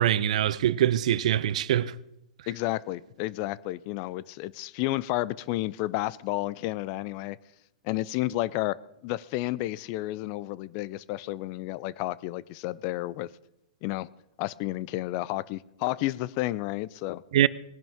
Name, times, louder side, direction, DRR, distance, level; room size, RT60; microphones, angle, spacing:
voice 1, 0.0-1.9 17.3-17.5, right 11 dB, 65° right, 0.5 m, -23 dB
voice 2, 2.5-7.4 7.8-8.8 9.0-13.3 13.8-14.1 14.4-17.2, left 17 dB, 45° left, 0.4 m, -31 dB
19.0 x 10.5 x 3.6 m
hypercardioid pair, 125°, 4 cm